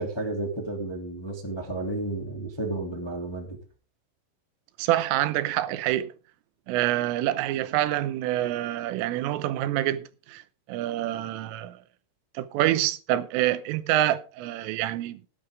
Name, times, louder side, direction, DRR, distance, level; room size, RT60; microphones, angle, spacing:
voice 1, 0.0-3.6, right 2 dB, 15° left, 1.0 m, -32 dB
voice 2, 4.8-6.1 6.7-10.4 10.7-11.8 12.4-15.2, right 14 dB, 85° right, 3.5 m, -26 dB
17.0 x 10.5 x 3.7 m
omnidirectional pair, 5.8 m